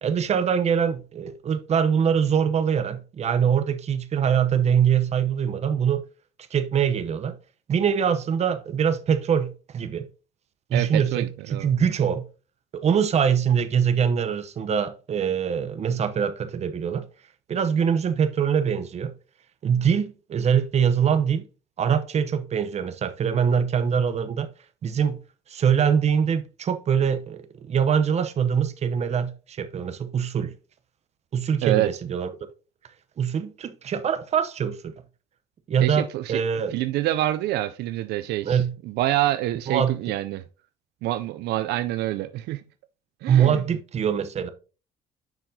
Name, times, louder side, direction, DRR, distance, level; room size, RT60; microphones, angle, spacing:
voice 1, 0.0-6.0 6.5-7.4 7.7-10.1 10.7-12.3 12.7-17.0 17.5-19.1 19.6-21.4 21.8-24.5 24.8-25.2 25.5-30.5 31.3-32.3 33.2-34.9 35.7-36.7 38.4-38.7 39.7-39.9 43.3-44.5, right 7 dB, 40° right, 0.7 m, -23 dB
voice 2, 10.7-11.7 31.6-31.9 35.8-36.4 36.7-40.4 41.0-42.6 43.2-43.6, right 15 dB, 80° right, 0.4 m, -26 dB
6.9 x 5.7 x 2.7 m
cardioid pair, 110°, 17 cm